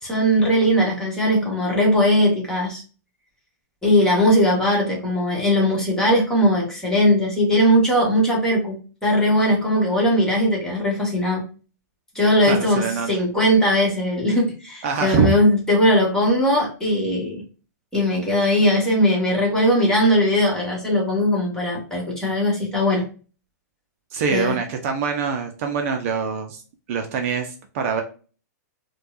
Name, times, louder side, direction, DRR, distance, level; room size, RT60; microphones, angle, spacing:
voice 1, 0.0-2.8 3.8-11.4 12.1-17.4 17.9-23.0 24.3-24.5, equal, 5° left, -4 dB, 1.5 m, -19 dB
voice 2, 12.4-13.1 14.8-15.4 24.1-26.6 26.9-28.0, right 6 dB, 50° right, 5 dB, 0.6 m, -24 dB
4.4 x 2.3 x 2.5 m, 0.37 s
hypercardioid pair, 140°, 9 cm